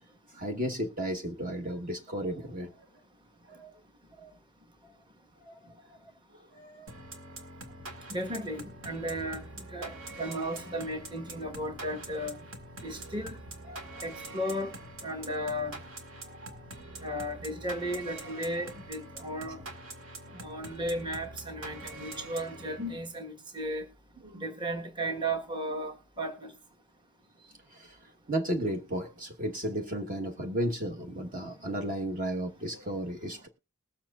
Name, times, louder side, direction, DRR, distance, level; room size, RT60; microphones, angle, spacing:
voice 1, 0.3-2.8 3.4-3.8 4.2-4.4 4.8-4.9 5.4-6.9 13.7-14.0 16.2-16.6 18.3-18.6 24.2-24.5 27.7-33.5, right 1 dB, 35° right, 1.2 m, -35 dB
sound 1, 6.9-23.2, right 2 dB, 65° right, 2.0 m, -45 dB
voice 2, 8.1-12.5 12.8-13.4 14.0-14.7 15.0-15.8 17.0-19.6 20.3-23.9 24.3-26.5, right 1 dB, 20° right, 1.4 m, -35 dB
20.5 x 7.4 x 2.4 m
head